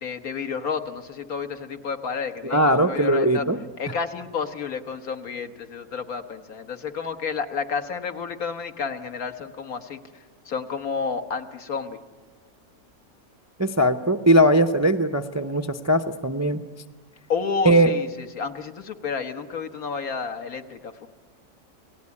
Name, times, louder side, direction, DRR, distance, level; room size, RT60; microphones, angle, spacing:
voice 1, 0.0-3.5 3.8-10.0 10.5-12.0 17.3-21.1, left 5 dB, 75° left, 7 dB, 1.8 m, -30 dB
voice 2, 2.4-3.6 13.6-16.6 17.6-17.9, right 1 dB, 20° right, 6 dB, 0.4 m, -20 dB
28.5 x 18.0 x 9.7 m, 1.3 s
omnidirectional pair, 1.6 m